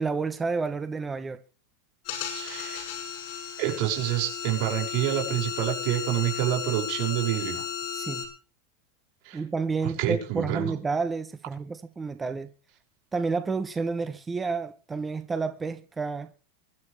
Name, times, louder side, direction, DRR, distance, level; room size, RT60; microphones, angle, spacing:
voice 1, 0.0-1.4 7.9-8.3 9.3-12.5 13.1-16.3, right 4 dB, 10° right, 0.8 m, -30 dB
sound 1, 2.0-8.2, left 7 dB, 50° left, 6.2 m, -34 dB
voice 2, 2.3-2.8 3.6-7.6 9.2-9.4 9.8-10.7, right 13 dB, 50° right, 6.5 m, -28 dB
24.0 x 12.0 x 3.4 m
supercardioid pair, 155°, 0 cm